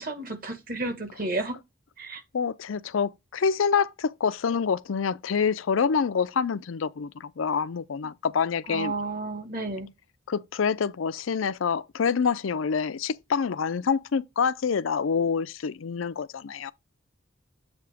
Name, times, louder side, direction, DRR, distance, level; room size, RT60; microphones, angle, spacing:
voice 1, 0.0-1.6 2.0-2.2 8.7-9.9, right 2 dB, 45° right, 1.7 m, -32 dB
voice 2, 2.3-8.9 10.3-16.7, left 6 dB, 85° left, 0.5 m, -26 dB
8.0 x 2.9 x 4.9 m
head